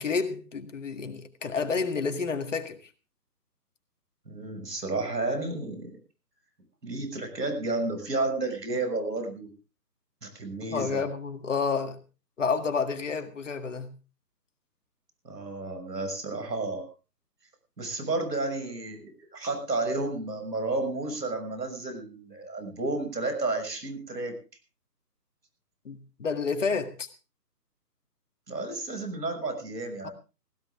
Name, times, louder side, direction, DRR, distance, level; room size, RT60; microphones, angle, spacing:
voice 1, 0.0-2.8 10.7-12.0 12.4-13.9 25.9-27.1 30.0-30.1, left 5 dB, 50° left, 1.9 m, -29 dB
voice 2, 4.3-6.0 6.8-9.5 10.2-11.1 15.2-16.9 17.8-24.4 28.5-30.1, right 2 dB, 75° right, 6.6 m, -31 dB
17.0 x 17.0 x 3.6 m
figure-of-eight pair, 155°, 49 cm